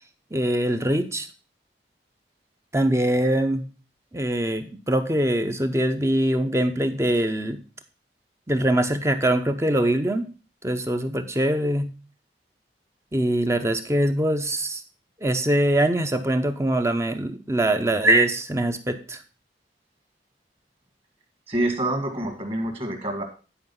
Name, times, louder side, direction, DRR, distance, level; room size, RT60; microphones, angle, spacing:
voice 1, 0.3-1.3 2.7-3.6 4.1-7.6 8.5-10.3 10.6-11.9 13.1-14.8 15.2-19.2, right 1 dB, 15° right, 8 dB, 0.7 m, -23 dB
voice 2, 21.5-23.2, right 1 dB, 30° right, 6 dB, 1.8 m, -26 dB
10.0 x 5.0 x 5.5 m, 0.35 s
head